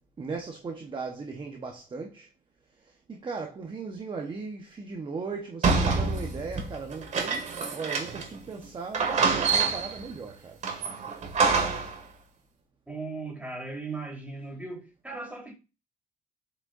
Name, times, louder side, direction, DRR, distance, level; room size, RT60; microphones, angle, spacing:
voice 1, 0.2-2.3 2.8-10.6, right 4 dB, 30° right, 1.2 m, -38 dB
sound 1, 5.6-8.4 8.6-8.7 8.9-10.0 10.6-12.0, right 4 dB, 45° right, 2.1 m, -26 dB
voice 2, 12.9-15.5, right 3 dB, 10° right, 4.0 m, -37 dB
8.0 x 6.3 x 2.7 m
cardioid pair, 110°, 17 cm